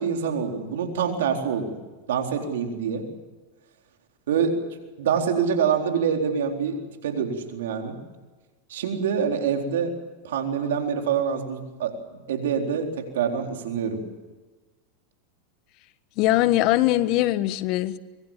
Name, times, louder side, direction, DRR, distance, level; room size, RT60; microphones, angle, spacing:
voice 1, 0.0-1.7 2.1-3.1 4.3-4.6 5.0-8.0 8.7-9.9 10.2-12.0 12.3-14.0, right 7 dB, 75° right, 3 dB, 4.1 m, -25 dB
voice 2, 16.2-18.0, left 15 dB, 50° left, 14 dB, 1.3 m, -21 dB
24.5 x 23.0 x 7.4 m, 1.3 s
hypercardioid pair, 105°, 0 cm